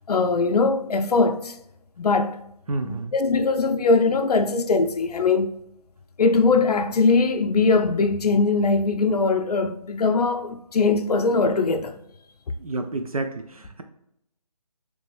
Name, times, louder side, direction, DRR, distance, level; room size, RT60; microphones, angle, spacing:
voice 1, 0.1-1.5 2.0-2.4 2.8-5.5 6.2-12.0, left 4 dB, 90° left, 0.4 m, -21 dB
voice 2, 2.7-3.1 12.6-13.8, right 2 dB, 65° right, 0.4 m, -30 dB
3.3 x 2.6 x 3.3 m
figure-of-eight pair, 175°, 19 cm